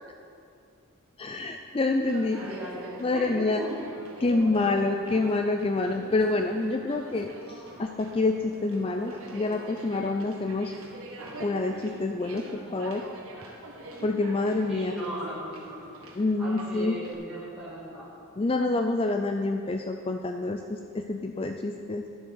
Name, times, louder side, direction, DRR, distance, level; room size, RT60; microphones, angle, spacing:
voice 1, 1.2-2.4 3.0-3.6 4.2-10.7 11.4-13.0 14.0-14.9 16.2-17.0 18.4-22.1, left 2 dB, 25° left, 5 dB, 0.3 m, -27 dB
Conversation, 1.9-17.1, right 2 dB, 70° right, 1.6 m, -45 dB
voice 2, 2.3-3.7 4.1-4.7 5.0-5.1 14.7-15.8 16.4-18.1, right 1 dB, 5° right, -11 dB, 2.5 m, -37 dB
11.0 x 7.7 x 6.4 m, 2.4 s
head